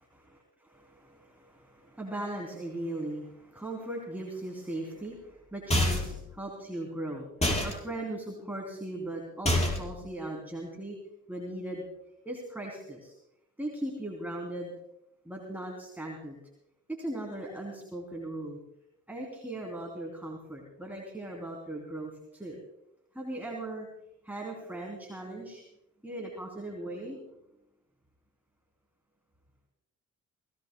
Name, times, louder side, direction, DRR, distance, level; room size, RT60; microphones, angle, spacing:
voice 1, 0.1-11.0 11.3-11.8 12.2-13.1 13.6-14.7 15.2-16.4 17.0-18.6 19.1-22.6 23.1-23.9 24.2-25.6 26.0-27.2, right 1 dB, 5° right, 0 dB, 3.1 m, -38 dB
sound 1, 5.7-6.2 7.4-7.7 9.5-10.0, left 1 dB, 20° left, 5.3 m, -26 dB
22.5 x 17.0 x 2.3 m, 0.81 s
supercardioid pair, 70°, 31 cm